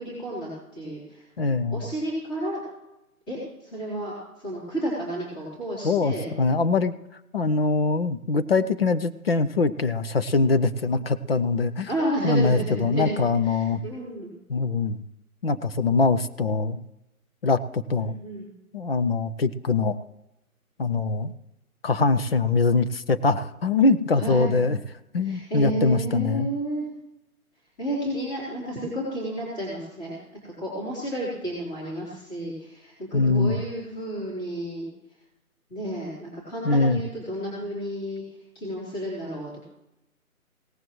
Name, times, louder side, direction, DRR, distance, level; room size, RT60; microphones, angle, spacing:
voice 1, 0.0-1.2 1.7-2.6 3.3-4.1 4.4-6.3 11.9-13.1 13.4-14.3 18.0-18.5 24.2-24.5 25.2-26.9 27.8-30.2 30.4-34.9 35.7-38.2 38.5-39.6, right 1 dB, 15° left, -7 dB, 3.9 m, -31 dB
voice 2, 1.4-1.8 5.8-6.9 7.3-11.9 12.2-13.8 14.5-15.0 15.4-16.8 17.4-18.2 18.7-20.0 20.8-21.3 21.8-24.8 25.1-26.5 33.1-33.6 36.6-37.0, left 3 dB, 40° left, 12 dB, 0.7 m, -23 dB
17.5 x 15.0 x 3.1 m, 0.89 s
hypercardioid pair, 160°, 44 cm